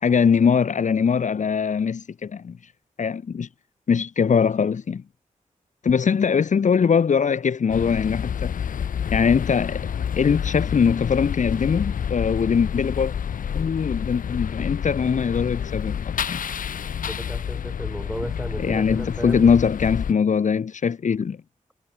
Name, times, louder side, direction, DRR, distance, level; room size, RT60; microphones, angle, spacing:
voice 1, 0.0-2.7 3.0-3.5 3.9-5.0 5.8-8.5 9.1-9.9 10.2-13.1 13.5-16.4 18.6-21.4, left 6 dB, 65° left, 1.7 m, -21 dB
sound 1, 7.7-20.1, left 8 dB, 85° left, 0.7 m, -29 dB
voice 2, 17.2-19.6, equal, 5° right, 1.9 m, -34 dB
wide cardioid pair, 175°, 14 cm